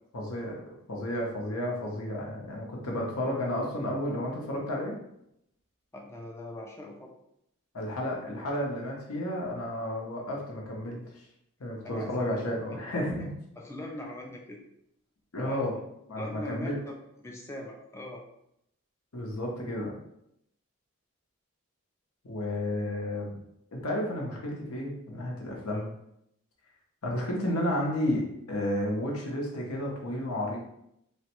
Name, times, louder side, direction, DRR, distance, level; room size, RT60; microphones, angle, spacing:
voice 1, 0.1-0.6 0.9-4.9 7.7-11.2 11.6-13.3 15.3-15.8 16.1-16.8 19.1-19.9 22.2-23.4 23.7-25.9 27.0-30.6, left 1 dB, 80° left, -1 dB, 0.8 m, -32 dB
voice 2, 5.9-7.1 11.8-12.4 12.9-13.1 13.6-14.6 15.5-15.6 16.2-18.2 25.7-25.8, left 1 dB, 10° left, 0 dB, 0.3 m, -41 dB
3.1 x 2.1 x 3.0 m, 0.77 s
head